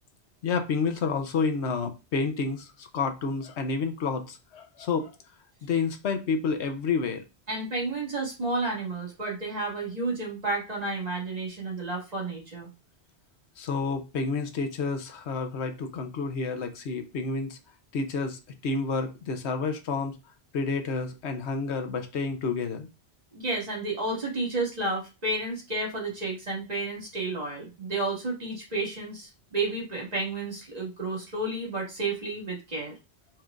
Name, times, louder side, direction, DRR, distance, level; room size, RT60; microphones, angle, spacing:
voice 1, 0.4-5.2 5.6-7.2 13.6-17.6 17.9-20.2 20.5-22.9, left 4 dB, 85° left, 6 dB, 1.1 m, -29 dB
voice 2, 7.5-12.7 23.3-32.9, right 2 dB, 35° right, -3 dB, 1.9 m, -31 dB
4.6 x 4.5 x 2.5 m, 0.28 s
omnidirectional pair, 1.1 m